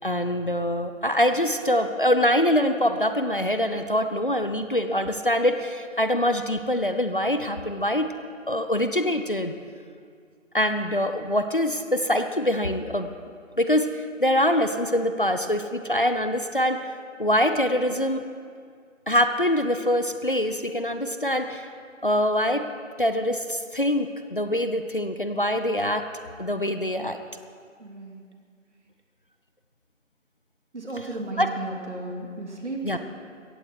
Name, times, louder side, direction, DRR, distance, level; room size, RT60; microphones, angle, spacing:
voice 1, 0.0-8.1 8.5-9.5 10.5-13.1 13.6-16.9 17.2-18.2 19.1-21.7 22.0-22.6 23.0-26.1 26.4-27.2 31.4-31.5 32.8-33.0, left 1 dB, 40° left, 8 dB, 0.6 m, -24 dB
voice 2, 27.8-28.2 30.7-33.0, right 2 dB, 60° right, 0 dB, 3.0 m, -34 dB
17.0 x 15.5 x 4.7 m, 2.1 s
figure-of-eight pair, 175°, 39 cm